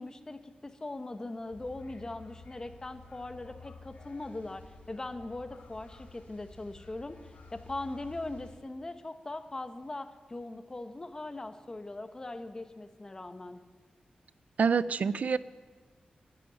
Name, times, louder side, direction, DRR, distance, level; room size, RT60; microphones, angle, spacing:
voice 1, 0.0-7.2 7.5-13.6, left 2 dB, 25° left, 9 dB, 0.8 m, -40 dB
sound 1, 1.5-8.6, left 3 dB, 85° left, 5.5 m, -52 dB
voice 2, 14.6-15.4, right 5 dB, 60° right, 16 dB, 0.4 m, -26 dB
11.0 x 10.5 x 9.1 m, 1.5 s
wide cardioid pair, 150°, 3 cm